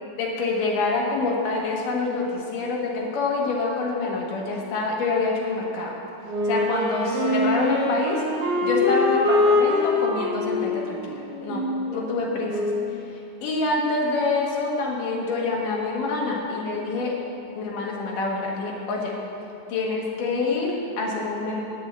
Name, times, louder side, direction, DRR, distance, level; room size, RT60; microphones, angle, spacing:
voice 1, 0.2-5.9 6.4-8.2 8.6-11.1 11.4-11.6 11.9-12.7 13.1-17.2 17.5-19.1 19.7-21.7, left 3 dB, 75° left, -2 dB, 3.0 m, -26 dB
Wind instrument woodwind instrument, 6.3-13.0, left 2 dB, 70° right, 3.2 m, -24 dB
8.8 x 7.3 x 7.9 m, 2.8 s
omnidirectional pair, 3.8 m